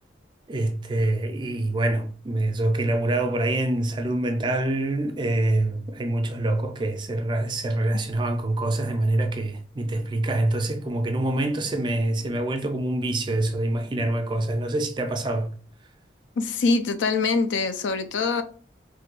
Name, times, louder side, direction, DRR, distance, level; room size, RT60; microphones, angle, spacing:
voice 1, 0.5-15.5, right 1 dB, 25° right, 0.4 m, -25 dB
voice 2, 16.4-18.4, left 4 dB, 80° left, 0.4 m, -24 dB
2.6 x 2.2 x 3.9 m
head